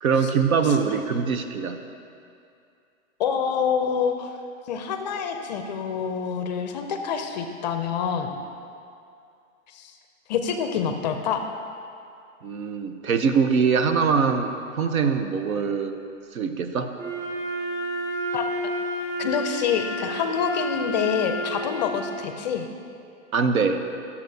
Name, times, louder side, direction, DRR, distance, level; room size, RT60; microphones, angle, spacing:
voice 1, 0.0-1.8 12.4-15.9 16.3-16.9 23.3-23.8, right 5 dB, 80° right, 7 dB, 0.8 m, -23 dB
voice 2, 0.6-1.0 3.2-4.3 4.7-8.4 9.7-9.9 10.3-11.5 18.3-18.7 19.2-22.7, left 7 dB, 35° left, 6 dB, 0.4 m, -27 dB
Wind instrument woodwind instrument, 17.0-22.1, equal, 40° right, 1.5 m, -30 dB
12.5 x 7.0 x 2.7 m, 2.5 s
hypercardioid pair, 135°, 41 cm